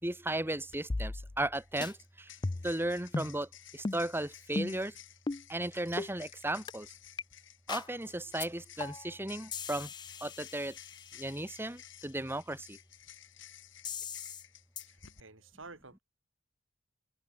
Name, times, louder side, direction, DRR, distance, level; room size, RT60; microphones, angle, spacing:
voice 1, 0.0-2.3 2.6-4.9 5.5-6.9 7.7-9.9 10.2-10.8 11.1-12.8, right 1 dB, 10° right, 1.9 m, -35 dB
sound 1, 0.7-0.8 1.5-15.2, left 11 dB, 70° left, 3.1 m, -54 dB
sound 2, 0.9-1.5 1.8-1.9 2.4-2.8 3.1-3.3 3.8-4.0 4.5-4.8 5.3-5.4 6.0-6.1 6.7-6.8 7.2-7.3 7.7-7.9 8.4-8.5 8.8-9.1 9.5-11.3 13.8-14.4 14.8-14.9, left 3 dB, 20° left, 0.4 m, -37 dB
voice 2, 14.9-16.0, right 3 dB, 80° right, 5.8 m, -51 dB
head